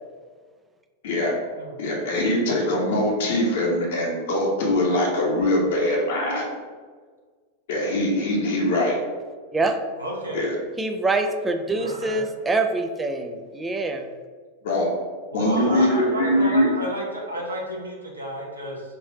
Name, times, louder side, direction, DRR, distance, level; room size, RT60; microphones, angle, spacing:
voice 1, 1.8-6.5 7.7-9.0 10.3-10.6 14.6-14.9 15.3-16.7, left 1 dB, 55° left, -2 dB, 0.9 m, -22 dB
voice 2, 10.0-10.4 11.7-12.3 15.3-18.8, right 1 dB, 80° right, -2 dB, 0.7 m, -31 dB
voice 3, 10.8-14.1, right 3 dB, 15° right, 6 dB, 0.4 m, -25 dB
3.3 x 2.7 x 4.0 m, 1.5 s
figure-of-eight pair, 90°, 0 cm